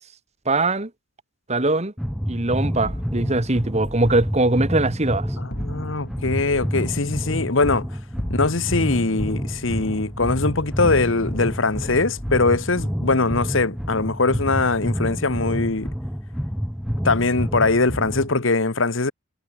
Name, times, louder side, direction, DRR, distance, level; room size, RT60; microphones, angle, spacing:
voice 1, 0.5-0.9 1.5-1.9 2.3-5.3, right 2 dB, 35° right, 1.9 m, -21 dB
sound 1, 2.0-18.4, equal, ahead, 6.3 m, -28 dB
sound 2, 2.8-4.4 5.5-6.8 8.0-8.8 9.2-11.5 11.8-12.5, left 1 dB, 50° left, 3.1 m, -38 dB
voice 2, 5.4-7.9 8.3-15.9 17.0-19.1, left 3 dB, 65° left, 1.4 m, -22 dB
head